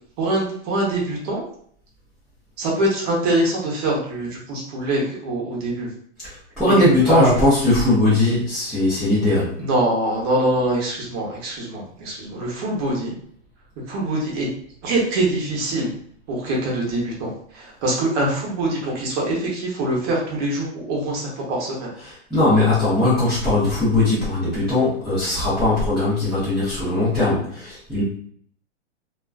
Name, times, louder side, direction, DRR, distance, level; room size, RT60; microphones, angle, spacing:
voice 1, 0.2-1.4 2.6-5.9 6.6-7.4 9.6-13.2 13.9-14.5 14.8-15.9 16.3-21.9, right 1 dB, 35° right, -3 dB, 0.7 m, -23 dB
voice 2, 6.2-9.6 22.0-28.0, left 2 dB, ahead, -14 dB, 0.5 m, -19 dB
2.4 x 2.2 x 2.3 m, 0.62 s
hypercardioid pair, 145°, 34 cm